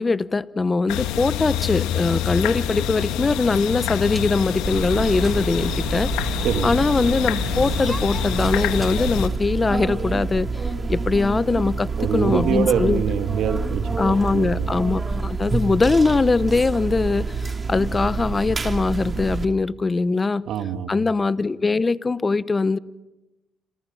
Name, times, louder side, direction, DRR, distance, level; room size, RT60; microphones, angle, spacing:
voice 1, 0.0-13.0 14.0-20.4 20.9-22.8, left 3 dB, 30° left, 0.9 m, -22 dB
sound 1, 0.9-9.3, left 10 dB, 85° left, 1.7 m, -26 dB
sound 2, 3.2-9.3, equal, 5° right, 1.8 m, -39 dB
sound 3, 4.6-19.4, right 4 dB, 30° right, 2.8 m, -27 dB
voice 2, 12.0-14.7 20.5-20.9, right 8 dB, 75° right, 2.1 m, -24 dB
29.5 x 27.5 x 5.6 m
supercardioid pair, 65°, 0 cm